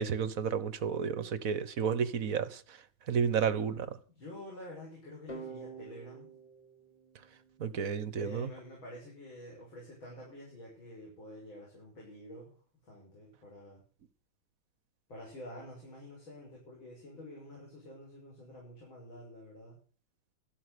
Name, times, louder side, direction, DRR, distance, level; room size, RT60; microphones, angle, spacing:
voice 1, 0.0-2.8 3.1-4.0 7.6-8.5, right 6 dB, 50° right, 1.4 m, -31 dB
voice 2, 4.2-6.3 8.2-12.6 12.8-13.8 15.1-19.8, left 1 dB, 80° left, 6.9 m, -48 dB
sound 1, 5.3-8.1, right 4 dB, 15° left, 3.5 m, -48 dB
14.0 x 12.5 x 6.8 m
omnidirectional pair, 2.1 m